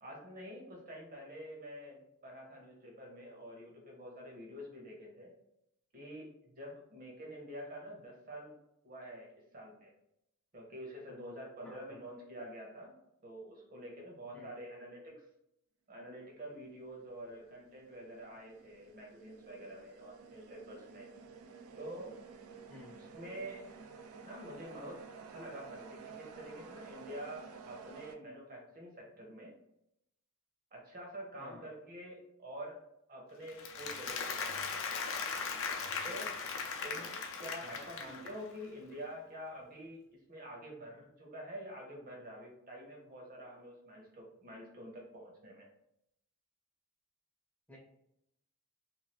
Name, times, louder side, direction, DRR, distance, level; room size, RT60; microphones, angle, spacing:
voice 1, 0.0-5.3 5.9-8.5 8.8-9.9 10.5-15.2 15.9-21.1 21.8-22.1 23.0-23.7 24.2-25.0 25.3-29.5 30.7-32.8 33.1-35.1 36.0-36.3 36.8-45.7, equal, 40° right, -1 dB, 0.9 m, -47 dB
voice 2, 11.6-12.0 14.3-14.5 22.7-23.0 31.4-31.7 37.6-37.9 47.7-47.8, left 2 dB, 5° left, -4 dB, 0.6 m, -53 dB
sound 1, 16.6-28.2, right 5 dB, 65° right, 0.4 m, -52 dB
Applause, 33.5-38.5, left 5 dB, 65° left, 0.5 m, -38 dB
2.7 x 2.4 x 3.1 m, 0.80 s
head